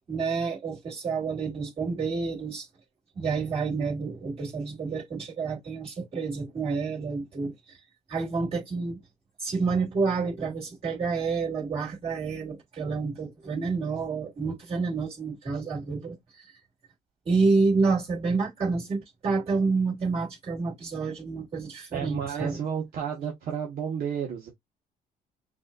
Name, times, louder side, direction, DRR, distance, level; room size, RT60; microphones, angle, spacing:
voice 1, 0.1-2.7 3.1-7.5 8.1-9.0 9.4-16.1 17.2-22.6, right 4 dB, 35° right, 2.9 m, -28 dB
voice 2, 21.9-24.5, right 7 dB, 60° right, 1.3 m, -32 dB
5.9 x 2.8 x 2.4 m
cardioid pair, 110°, 17 cm